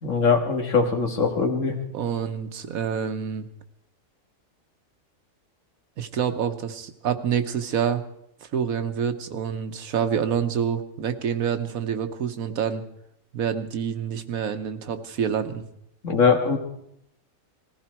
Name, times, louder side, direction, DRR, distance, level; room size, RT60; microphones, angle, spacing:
voice 1, 0.0-1.8 16.0-16.6, left 5 dB, 65° left, 3 dB, 2.1 m, -21 dB
voice 2, 1.9-3.5 6.0-8.0 8.5-12.8 13.3-15.6, right 8 dB, 90° right, 8 dB, 1.5 m, -27 dB
19.5 x 15.0 x 4.5 m, 0.75 s
omnidirectional pair, 1.4 m